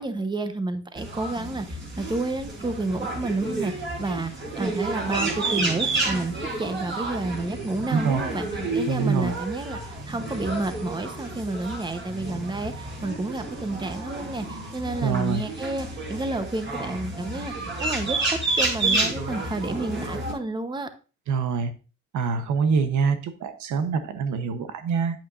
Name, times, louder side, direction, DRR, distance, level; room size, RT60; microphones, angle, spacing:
voice 1, 0.0-3.7 4.0-8.5 8.7-20.9, right 2 dB, 15° right, 9 dB, 1.0 m, -30 dB
sound 1, 1.0-20.3, right 2 dB, 40° right, 3.9 m, -30 dB
voice 2, 7.9-8.4 8.9-9.4 15.0-15.4 21.3-21.7 22.1-25.3, right 5 dB, 75° right, 9 dB, 1.0 m, -25 dB
8.7 x 8.5 x 2.6 m, 0.33 s
cardioid pair, 90°, 30 cm